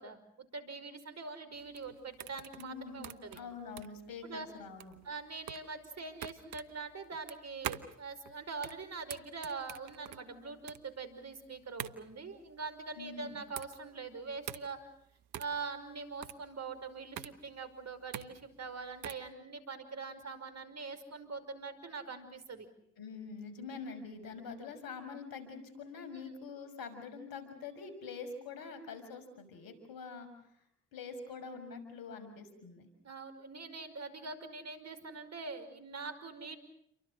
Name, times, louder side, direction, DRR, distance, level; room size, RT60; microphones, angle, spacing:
voice 1, 0.0-3.4 4.2-4.5 5.0-14.8 15.4-22.7 33.0-36.6, right 4 dB, 45° right, 11 dB, 5.4 m, -43 dB
sound 1, 1.5-19.3, right 11 dB, 70° right, 1.3 m, -46 dB
voice 2, 2.6-5.0 13.0-13.4 23.0-30.6 30.9-32.9, left 5 dB, 70° left, 10 dB, 6.3 m, -45 dB
29.5 x 24.5 x 6.4 m, 0.73 s
hypercardioid pair, 50°, 36 cm